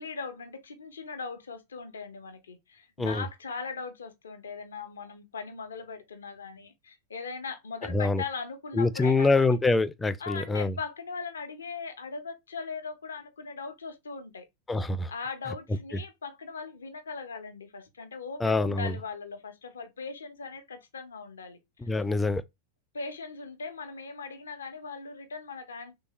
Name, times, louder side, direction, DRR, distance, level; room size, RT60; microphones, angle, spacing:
voice 1, 0.0-9.6 10.2-14.5 15.1-21.6 22.9-25.9, left 4 dB, 70° left, 0.6 m, -39 dB
voice 2, 7.9-8.2 8.7-10.7 14.7-15.1 18.4-19.0 21.8-22.4, left 3 dB, 10° left, 0.3 m, -25 dB
3.3 x 2.7 x 2.9 m
figure-of-eight pair, 90°, 0 cm